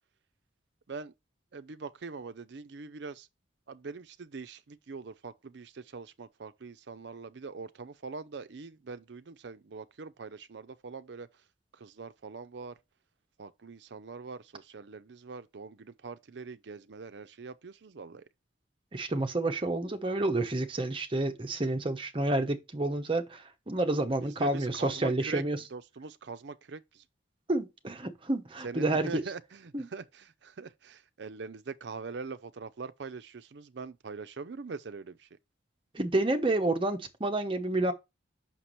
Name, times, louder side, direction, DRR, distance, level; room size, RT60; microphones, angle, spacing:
voice 1, 1.5-3.3 3.7-11.3 11.7-12.7 13.4-18.2 24.0-25.4 25.7-27.0 28.6-35.3, right 4 dB, 60° right, 0.5 m, -43 dB
voice 2, 18.9-25.6 27.5-29.2 29.7-29.9 35.9-37.9, right 2 dB, 25° right, 0.8 m, -29 dB
5.9 x 5.8 x 3.1 m
head